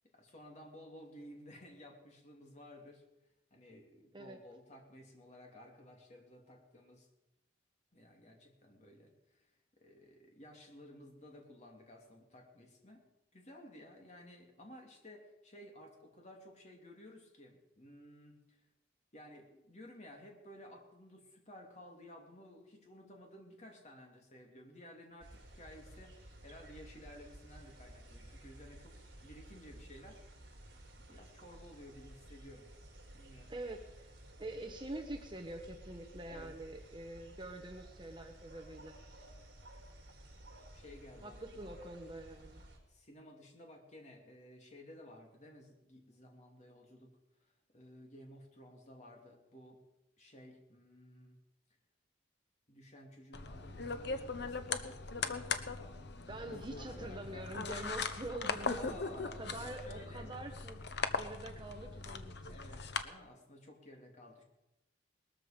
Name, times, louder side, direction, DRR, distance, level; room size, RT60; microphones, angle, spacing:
voice 1, 0.1-3.0 3.5-7.1 7.9-9.5 9.8-13.0 13.3-18.7 19.1-29.0 29.2-30.2 31.1-32.7 33.1-33.5 36.3-36.5 40.7-41.7 42.9-47.1 47.4-49.8 50.2-51.4 52.7-56.0 56.3-57.5 58.7-60.3 62.5-64.4, left 1 dB, 35° left, 1 dB, 2.9 m, -55 dB
sound 1, 25.2-42.8, right 1 dB, 60° right, 4.7 m, -55 dB
voice 2, 33.5-34.1 34.4-39.0 41.2-42.6 56.3-59.0 59.4-60.8 61.2-62.6, right 2 dB, 25° right, 4 dB, 1.1 m, -45 dB
sound 2, 53.3-63.0, left 4 dB, 60° left, 1.0 m, -40 dB
20.0 x 13.5 x 5.2 m, 0.94 s
head